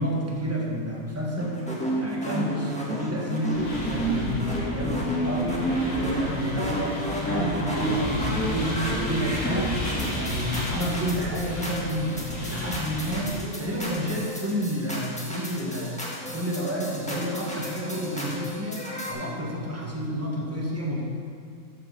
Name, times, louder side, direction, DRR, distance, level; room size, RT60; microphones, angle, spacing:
voice 1, 0.0-9.7 10.0-13.3 13.6-15.9 16.3-21.0, equal, 10° right, -3 dB, 1.4 m, -30 dB
sound 1, 1.4-19.1, right 1 dB, 5° left, 1.4 m, -32 dB
sound 2, 3.5-13.5, left 1 dB, 70° left, 2.2 m, -32 dB
7.8 x 6.0 x 6.6 m, 2.4 s
omnidirectional pair, 1.5 m